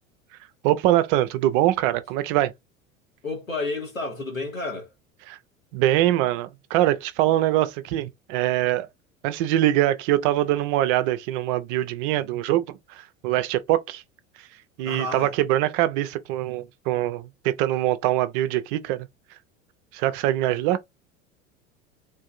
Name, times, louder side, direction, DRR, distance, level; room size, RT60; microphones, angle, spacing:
voice 1, 0.6-2.5 5.3-5.4 5.7-8.9 9.2-14.0 14.8-19.1 19.9-20.8, right 14 dB, 45° right, 0.5 m, -23 dB
voice 2, 3.2-4.9 14.8-15.3 20.5-20.6, left 2 dB, 85° left, 1.6 m, -31 dB
3.7 x 2.5 x 2.5 m
figure-of-eight pair, 75°, 39 cm